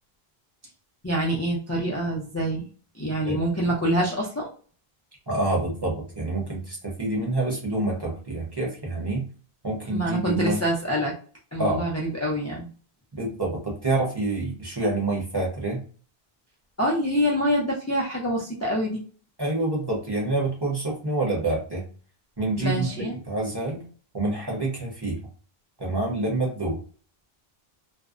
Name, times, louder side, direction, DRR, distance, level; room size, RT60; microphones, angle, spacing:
voice 1, 1.0-2.7 3.0-4.5 9.9-11.1 11.5-12.7 16.8-19.0 22.6-23.2, equal, 25° left, -5 dB, 0.4 m, -26 dB
voice 2, 5.3-9.2 9.6-10.6 11.6-11.8 13.1-15.8 19.4-21.8 22.4-23.8 24.1-25.2 25.8-26.8, right 2 dB, 25° right, -3 dB, 0.8 m, -27 dB
2.5 x 2.1 x 2.4 m, 0.41 s
omnidirectional pair, 1.0 m